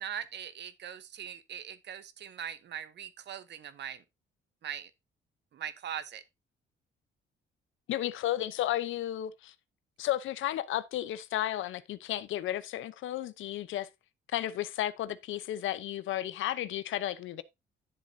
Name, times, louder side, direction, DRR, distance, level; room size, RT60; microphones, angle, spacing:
voice 1, 0.0-4.0 4.6-4.9 5.5-6.2, right 9 dB, 60° right, 1.0 m, -41 dB
voice 2, 7.9-9.5 10.0-13.9 14.3-17.4, left 13 dB, 80° left, 0.8 m, -33 dB
10.0 x 7.4 x 2.7 m
cardioid pair, 90°, 20 cm